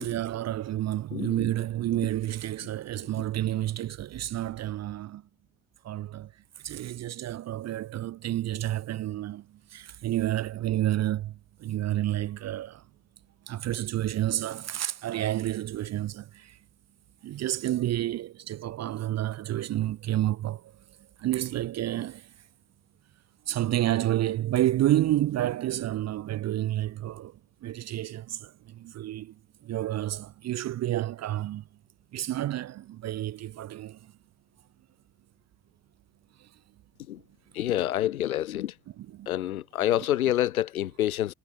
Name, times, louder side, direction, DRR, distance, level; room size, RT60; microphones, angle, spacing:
voice 1, 0.0-5.2 5.8-6.3 6.6-9.4 9.7-12.8 13.5-16.6 17.2-20.7 21.2-22.3 23.5-29.3 29.6-31.6 32.1-34.0 39.0-39.3 40.0-40.1, right 13 dB, 40° right, 1.0 m, -30 dB
voice 2, 1.1-1.5 37.1-37.2 37.5-38.7 39.3-41.3, left 12 dB, 75° left, 1.2 m, -27 dB
figure-of-eight pair, 60°, 43 cm